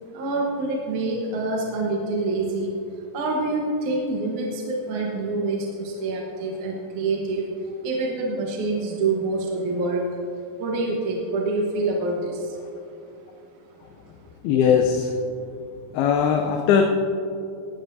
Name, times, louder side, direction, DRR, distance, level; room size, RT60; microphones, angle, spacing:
voice 1, 0.1-2.7 3.1-10.1 10.6-12.6, right 2 dB, 65° right, -2 dB, 2.4 m, -26 dB
voice 2, 14.4-15.2 15.9-16.8, left 7 dB, 85° left, 3 dB, 2.6 m, -19 dB
19.5 x 12.5 x 2.7 m, 2.7 s
omnidirectional pair, 4.3 m